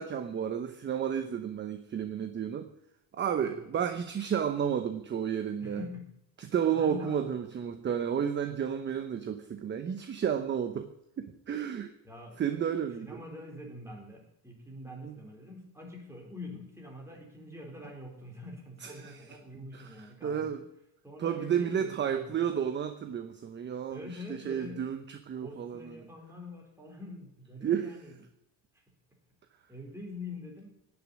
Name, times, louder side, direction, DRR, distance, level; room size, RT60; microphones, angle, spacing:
voice 1, 0.0-2.7 3.1-5.8 6.4-10.9 11.2-11.9 12.4-13.1 15.0-15.1 18.8-19.2 19.7-19.8 20.2-20.6 21.2-24.0 24.4-26.0 27.6-27.9, right 8 dB, 25° right, 8 dB, 0.9 m, -31 dB
voice 2, 3.4-3.7 5.6-6.1 6.7-7.3 12.0-12.4 13.0-20.7 21.0-22.5 23.9-24.8 25.4-28.2 28.7-28.8 29.7-30.7, left 2 dB, 5° right, -1 dB, 4.4 m, -45 dB
17.0 x 7.1 x 10.0 m, 0.82 s
cardioid pair, 165°, 43 cm